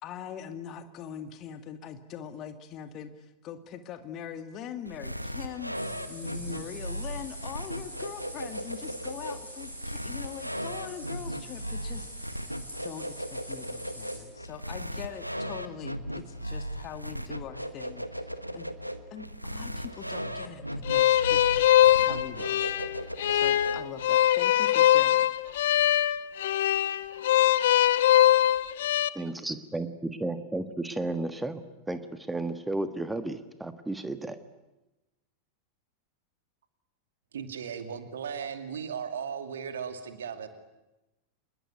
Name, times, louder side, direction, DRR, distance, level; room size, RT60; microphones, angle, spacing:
voice 1, 0.0-12.1 12.8-18.3 18.5-18.7 19.1-21.6 22.0-22.7 23.3-25.3, left 9 dB, 35° left, 9 dB, 2.1 m, -42 dB
sound 1, 4.9-24.1, equal, 90° right, 1.3 m, -37 dB
sound 2, 5.7-14.2, equal, 85° left, 7.5 m, -45 dB
sound 3, 20.9-29.1, left 12 dB, 60° left, 0.9 m, -22 dB
voice 2, 29.1-34.4, right 2 dB, 5° right, 10 dB, 1.5 m, -33 dB
voice 3, 37.3-40.5, right 7 dB, 65° right, 8 dB, 2.4 m, -36 dB
27.0 x 21.0 x 9.5 m, 1.0 s
figure-of-eight pair, 90°, 0 cm